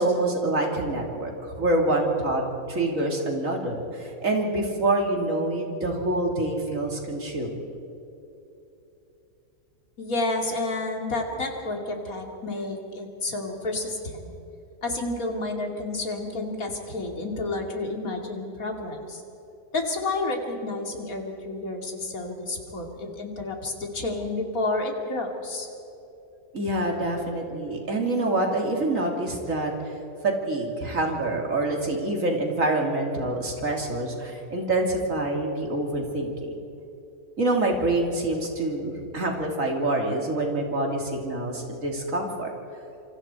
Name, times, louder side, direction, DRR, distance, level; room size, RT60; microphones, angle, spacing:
voice 1, 0.0-2.4 2.7-7.5 26.5-29.7 30.2-36.3 37.4-42.5, right 2 dB, 55° right, 1 dB, 3.3 m, -26 dB
voice 2, 10.0-14.3 14.8-19.2 19.7-25.7, left 2 dB, 60° left, 2 dB, 3.0 m, -30 dB
27.0 x 25.5 x 4.5 m, 2.9 s
omnidirectional pair, 1.7 m